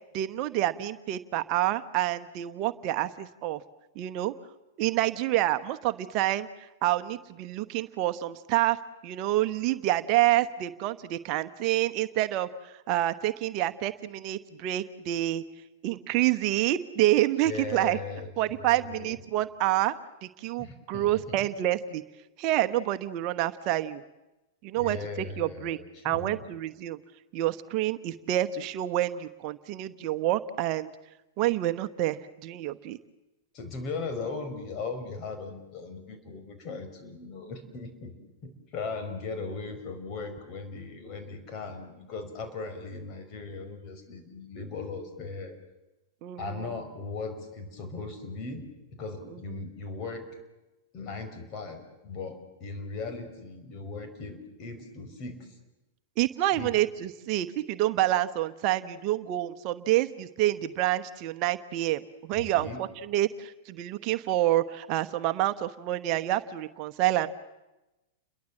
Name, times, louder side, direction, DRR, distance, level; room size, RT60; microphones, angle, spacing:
voice 1, 0.1-3.6 4.0-4.3 4.8-6.5 6.8-8.8 9.0-15.4 15.8-18.0 18.4-19.9 20.2-22.0 22.4-24.0 24.6-25.8 26.0-27.0 27.3-30.9 31.4-33.0 46.2-46.7 56.2-67.3, right 14 dB, 45° right, 9 dB, 1.1 m, -28 dB
voice 2, 17.4-19.2 20.6-21.5 24.8-26.4 33.5-38.1 38.7-45.6 46.4-48.6 48.9-50.2 50.9-55.5 56.5-56.8 62.3-62.8, left 4 dB, 40° left, 7 dB, 5.6 m, -38 dB
30.0 x 22.5 x 7.7 m, 1.0 s
figure-of-eight pair, 100°, 0 cm